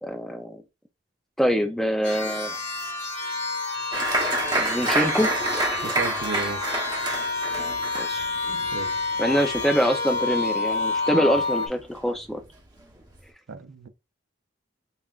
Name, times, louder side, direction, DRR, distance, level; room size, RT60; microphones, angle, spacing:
voice 1, 0.0-0.6 1.4-2.6 4.6-5.3 8.0-8.3 9.2-12.4, equal, ahead, 0.4 m, -24 dB
sound 1, 2.0-11.7, left 3 dB, 70° left, 1.3 m, -29 dB
Applause, 3.9-11.0 11.2-12.0 12.4-12.5 12.8-13.2, right 2 dB, 20° right, 0.9 m, -28 dB
voice 2, 5.8-6.7 8.7-8.9 11.1-11.3 13.5-13.9, right 4 dB, 75° right, 0.5 m, -34 dB
5.5 x 2.3 x 2.4 m
head